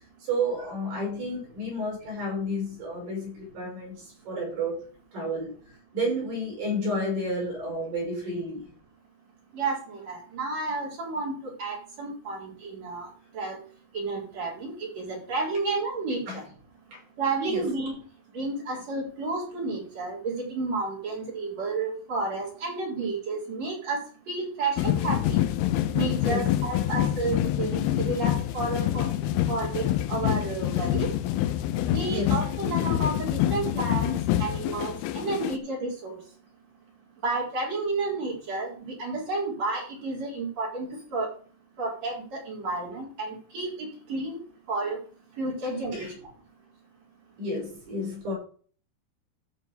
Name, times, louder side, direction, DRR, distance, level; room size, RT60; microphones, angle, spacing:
voice 1, 0.2-4.9 5.1-5.5 5.9-8.7 16.3-16.4 16.9-17.0 17.5-17.7 26.2-26.5 32.1-32.5 45.9-46.2 47.4-48.3, equal, 65° right, -3 dB, 8.6 m, -31 dB
voice 2, 9.5-13.1 13.3-13.6 13.9-16.4 17.2-17.9 18.3-24.0 24.3-25.4 25.9-29.1 29.5-31.1 31.8-34.1 34.4-36.2 37.2-41.3 41.8-44.4 44.7-45.0 45.4-46.1, right 3 dB, 40° right, -3 dB, 4.9 m, -31 dB
sound 1, 24.8-35.6, left 12 dB, 75° left, 2.6 m, -26 dB
14.0 x 5.2 x 5.2 m, 0.43 s
omnidirectional pair, 4.9 m